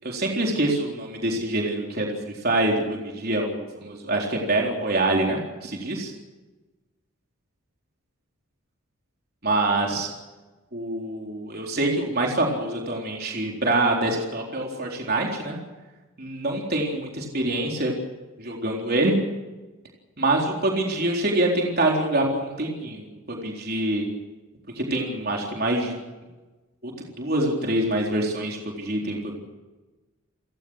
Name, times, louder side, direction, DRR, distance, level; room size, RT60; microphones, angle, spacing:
voice 1, 0.0-6.1 9.4-10.1 10.7-15.6 16.2-17.9 18.4-19.2 20.2-24.1 24.8-25.9 26.8-26.9 27.2-29.4, right 2 dB, 45° right, 0 dB, 4.0 m, -25 dB
30.0 x 18.0 x 6.5 m, 1.2 s
head